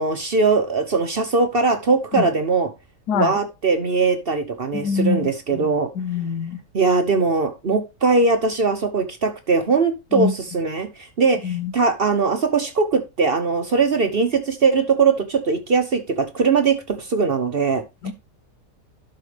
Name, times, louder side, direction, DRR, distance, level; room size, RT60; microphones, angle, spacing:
voice 1, 0.0-2.7 3.1-5.9 6.7-17.8, right 4 dB, 45° right, 0.9 m, -20 dB
voice 2, 4.7-5.7 6.0-6.6 10.1-10.3 11.4-11.7 18.0-18.1, left 5 dB, 80° left, 1.3 m, -24 dB
12.0 x 5.8 x 3.3 m
omnidirectional pair, 1.7 m